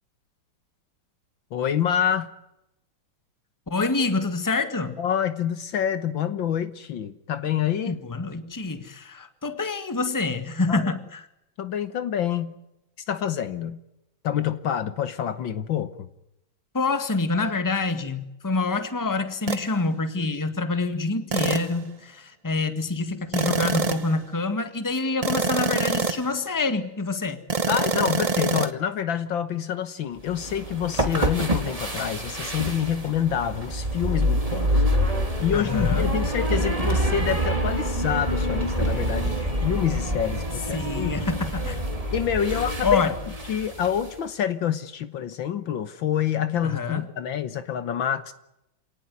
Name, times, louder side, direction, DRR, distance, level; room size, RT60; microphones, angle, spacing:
voice 1, 1.5-2.3 5.0-8.0 10.7-10.9 11.6-12.5 13.1-13.8 14.2-16.1 27.7-34.8 35.4-41.2 42.1-43.0 43.5-48.3, left 9 dB, 65° left, 13 dB, 1.8 m, -27 dB
voice 2, 3.7-5.0 7.9-11.3 16.7-27.4 35.5-36.1 40.7-41.8 42.8-43.1 46.6-47.1, left 3 dB, 10° left, 10 dB, 1.5 m, -26 dB
sound 1, 19.5-19.7 21.3-21.8 23.3-24.2 25.2-26.3 27.5-28.7, right 4 dB, 50° right, 0.4 m, -25 dB
sound 2, 30.3-44.1, equal, 15° right, 3.0 m, -26 dB
27.5 x 18.5 x 9.5 m, 0.87 s
omnidirectional pair, 2.3 m